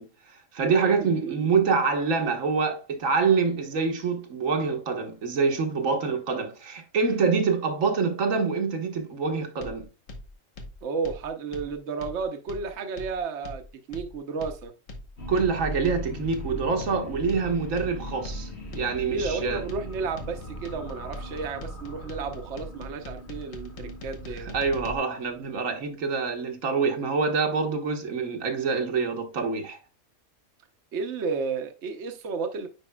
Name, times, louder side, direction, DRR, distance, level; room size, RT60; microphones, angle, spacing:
voice 1, 0.0-9.9 15.3-19.6 24.4-29.8, right 5 dB, 85° right, 1.6 m, -26 dB
voice 2, 0.6-1.5 10.8-13.6 13.9-14.7 19.1-24.5 30.9-32.7, right 5 dB, 65° right, 1.1 m, -32 dB
sound 1, 9.6-25.0, left 1 dB, 80° left, 1.5 m, -42 dB
sound 2, 15.2-28.0, equal, 55° left, 1.7 m, -40 dB
9.7 x 4.6 x 2.2 m
omnidirectional pair, 1.3 m